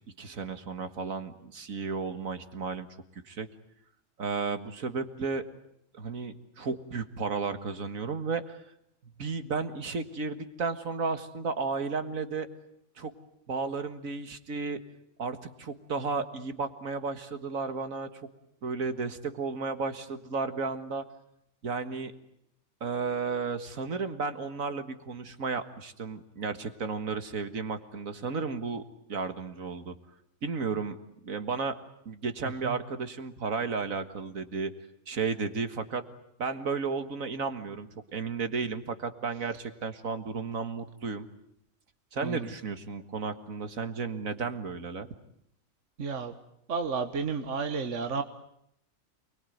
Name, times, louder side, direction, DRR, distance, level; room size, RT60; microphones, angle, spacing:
voice 1, 0.2-2.9 3.2-3.5 4.2-5.4 5.9-8.6 9.2-12.5 13.0-13.1 13.5-14.8 15.2-18.1 18.6-21.0 21.6-22.1 22.8-28.8 29.1-29.9 30.4-31.0 31.2-31.7 32.1-34.7 35.1-36.0 36.4-41.3 42.1-45.1, right 4 dB, 80° right, 9 dB, 2.1 m, -33 dB
voice 2, 46.0-46.3 46.7-48.2, right 5 dB, 65° right, 7 dB, 1.7 m, -31 dB
28.5 x 22.0 x 9.3 m, 0.76 s
omnidirectional pair, 1.4 m